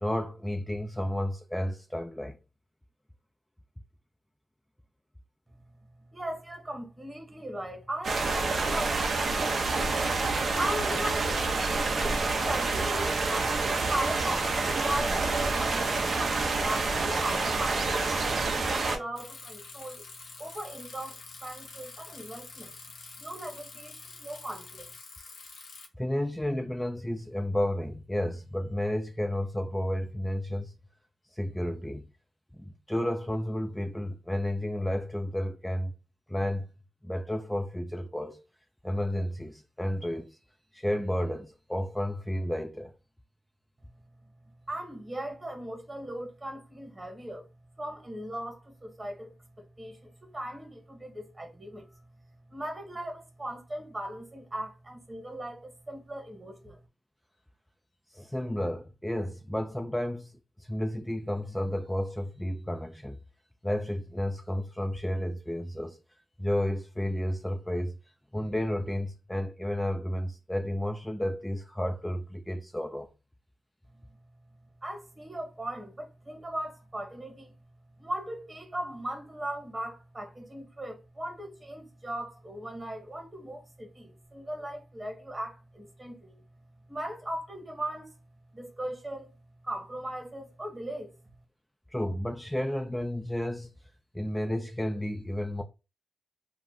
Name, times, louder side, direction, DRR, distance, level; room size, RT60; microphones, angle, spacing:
voice 1, 0.0-2.4 26.0-30.7 31.3-32.1 32.6-35.9 36.3-36.7 37.0-38.4 38.8-40.4 40.7-42.9 58.1-60.3 60.6-63.2 63.6-66.0 66.4-68.0 68.3-73.1 91.9-93.7 94.1-95.6, left 1 dB, 5° left, 0.3 m, -32 dB
voice 2, 6.1-10.0 10.4-11.3 12.4-20.0 20.4-22.7 23.2-24.9 44.7-47.4 47.8-49.3 49.8-51.9 52.5-56.8 74.8-77.5 78.0-86.4 86.9-88.1 88.5-89.3 89.6-91.1, right 1 dB, 30° right, 1.1 m, -38 dB
sound 1, 8.0-19.0, right 3 dB, 60° right, 0.5 m, -28 dB
Bicycle, 19.2-25.9, left 4 dB, 75° left, 0.6 m, -47 dB
2.3 x 2.1 x 3.6 m
cardioid pair, 55°, 0 cm